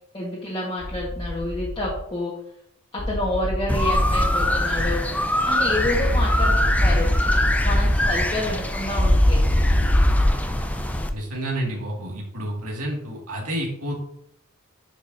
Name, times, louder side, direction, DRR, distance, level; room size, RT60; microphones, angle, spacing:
voice 1, 0.1-2.4 2.9-5.0 5.4-7.1 7.6-9.4, left 1 dB, 25° left, -6 dB, 1.4 m, -28 dB
sound 1, 0.8-2.0 3.0-5.0 6.0-8.0 9.0-10.3, left 1 dB, 45° left, 1.9 m, -22 dB
sound 2, 3.7-11.1, left 1 dB, 5° left, 0.5 m, -24 dB
voice 2, 11.1-13.9, right 1 dB, 80° right, -1 dB, 2.1 m, -29 dB
10.0 x 5.1 x 2.7 m, 0.72 s
head